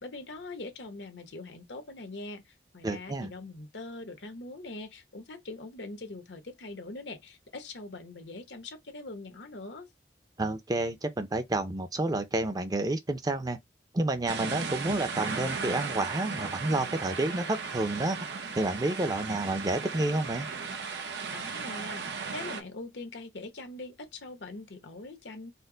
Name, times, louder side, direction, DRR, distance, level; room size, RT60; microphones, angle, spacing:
voice 1, 0.0-9.9 21.3-25.5, left 2 dB, 85° left, 1.0 m, -42 dB
voice 2, 2.8-3.3 10.4-13.6 13.9-18.2 18.6-20.5, right 2 dB, 20° right, 0.5 m, -30 dB
sound 1, 14.3-22.6, right 5 dB, 80° right, 0.7 m, -36 dB
4.3 x 2.0 x 3.8 m
head